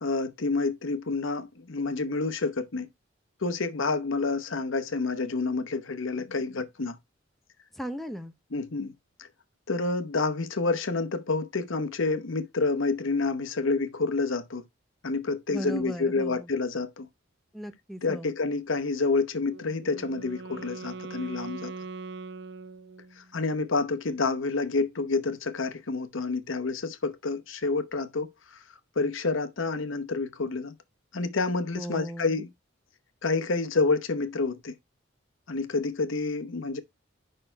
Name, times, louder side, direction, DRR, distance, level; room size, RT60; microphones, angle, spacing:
voice 1, 0.0-2.9 3.4-7.0 8.5-8.9 9.2-9.3 9.7-14.6 15.0-17.1 18.0-21.7 23.3-28.3 29.0-30.7 31.1-32.5 33.2-34.7 35.5-36.8, left 3 dB, 80° left, 0.9 m, -28 dB
voice 2, 7.7-8.3 15.5-16.5 17.5-18.3 31.8-32.4, equal, ahead, 0.6 m, -36 dB
Wind instrument woodwind instrument, 19.4-23.4, right 4 dB, 55° right, 0.8 m, -41 dB
6.7 x 5.6 x 4.4 m
head